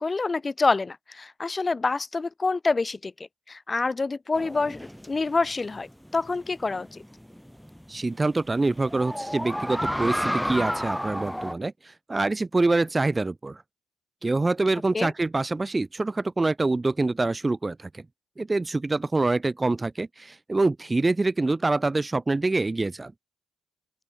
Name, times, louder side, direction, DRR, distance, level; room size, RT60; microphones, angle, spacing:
voice 1, 0.0-3.1 3.5-5.9 6.1-7.0 14.9-15.1, left 3 dB, 30° left, 0.7 m, -27 dB
sound 1, 4.3-11.5, equal, ahead, 3.1 m, -32 dB
voice 2, 7.9-13.6 14.2-18.0 18.4-23.1, right 2 dB, 25° right, 0.4 m, -25 dB
open air
supercardioid pair, 50°, 0 cm